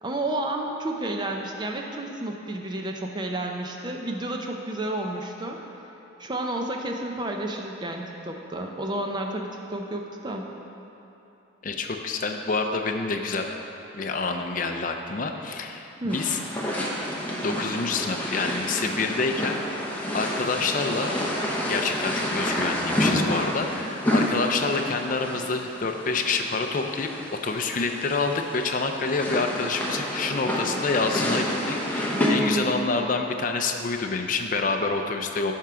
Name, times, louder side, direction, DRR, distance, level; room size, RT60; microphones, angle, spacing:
voice 1, 0.0-5.6 6.2-10.5 16.0-16.3 32.1-32.9, right 1 dB, 20° right, 2 dB, 0.5 m, -31 dB
voice 2, 11.6-13.6 13.9-16.4 17.4-19.8 20.1-21.2 21.6-27.1 27.4-35.5, left 4 dB, 40° left, 4 dB, 0.4 m, -27 dB
sound 1, 16.1-32.3, equal, 10° left, 0.8 m, -29 dB
10.5 x 3.7 x 5.7 m, 3.0 s
head